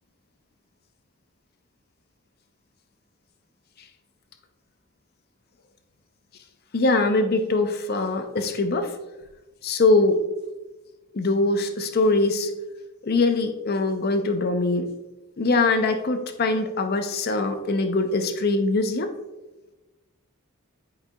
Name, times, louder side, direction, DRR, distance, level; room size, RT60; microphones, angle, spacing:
voice 1, 6.7-8.9 9.6-10.2 11.1-12.5 13.0-14.9 15.4-19.1, left 2 dB, 45° left, 7 dB, 0.5 m, -22 dB
11.0 x 4.9 x 2.2 m, 1.1 s
head